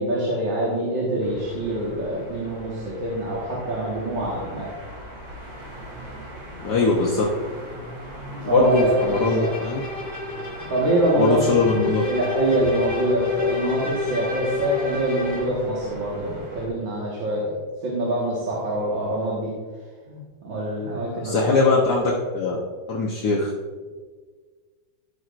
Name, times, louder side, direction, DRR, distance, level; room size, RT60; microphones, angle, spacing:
voice 1, 0.0-4.8 8.3-9.5 10.7-11.6 12.0-17.5 17.8-19.5 20.1-21.6, right 1 dB, 75° right, -6 dB, 2.4 m, -25 dB
sound 1, 1.2-16.7, equal, 40° right, 2.6 m, -39 dB
voice 2, 6.6-7.2 8.5-9.8 11.2-12.0 21.2-22.6 22.9-23.5, left 3 dB, 60° left, -2 dB, 1.5 m, -21 dB
Bowed string instrument, 8.6-15.6, left 5 dB, 20° left, 2.6 m, -30 dB
15.5 x 6.1 x 2.5 m, 1.5 s
omnidirectional pair, 2.1 m